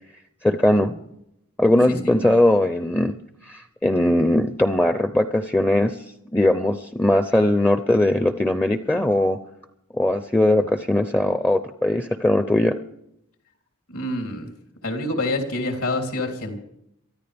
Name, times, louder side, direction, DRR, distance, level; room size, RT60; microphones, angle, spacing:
voice 1, 0.4-1.0 1.6-3.1 3.5-6.0 6.3-9.4 9.9-12.7, left 1 dB, 10° left, 9 dB, 0.5 m, -20 dB
voice 2, 13.9-14.5 14.8-16.6, left 2 dB, 80° left, 3 dB, 3.5 m, -26 dB
23.5 x 14.0 x 3.5 m, 0.79 s
head